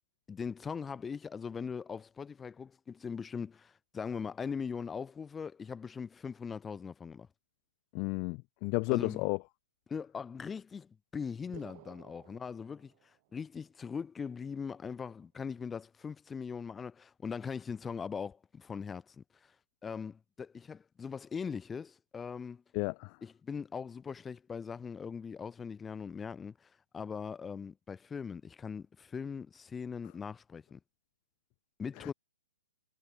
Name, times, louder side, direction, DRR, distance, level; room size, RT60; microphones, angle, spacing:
voice 1, 0.3-7.3 8.9-9.2 9.9-12.9 13.3-19.5 19.8-22.6 23.2-30.8 31.8-32.1, left 6 dB, 10° left, 6.4 m, -40 dB
voice 2, 7.9-9.4 22.7-23.2 32.0-32.1, left 37 dB, 25° left, 0.5 m, -32 dB
sound 1, 11.5-13.5, right 23 dB, 30° right, 4.2 m, -55 dB
hypercardioid pair, 160°, 0 cm